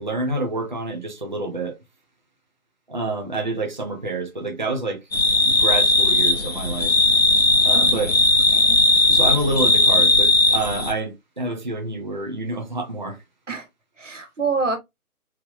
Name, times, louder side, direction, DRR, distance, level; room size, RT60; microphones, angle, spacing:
voice 1, 0.0-1.8 2.9-5.0 5.5-6.9 7.6-8.2 9.1-13.2, right 2 dB, 30° right, 0.6 m, -27 dB
sound 1, 5.1-10.9, left 2 dB, 45° left, 0.6 m, -17 dB
voice 2, 7.7-8.1 8.5-8.8 13.5-13.7 14.0-14.8, right 4 dB, 55° right, 1.1 m, -27 dB
3.6 x 3.0 x 2.3 m
figure-of-eight pair, 150°, 45 cm